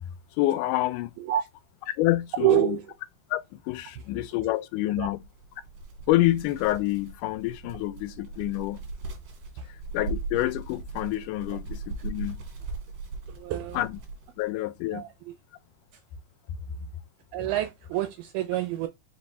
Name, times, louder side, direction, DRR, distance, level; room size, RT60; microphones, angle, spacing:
voice 1, 0.4-1.1 2.0-2.8 3.3-5.2 6.1-8.8 9.9-12.4 13.8-14.0 14.4-15.0, left 16 dB, 85° left, 2.1 m, -27 dB
voice 2, 1.2-1.5 2.4-2.9 5.0-5.1 9.6-9.7 11.5-11.6 13.3-13.8 14.9-15.1 17.3-18.9, right 14 dB, 80° right, 1.9 m, -27 dB
sound 1, 5.2-14.5, right 3 dB, 65° right, 2.1 m, -39 dB
5.1 x 2.2 x 4.0 m
omnidirectional pair, 3.5 m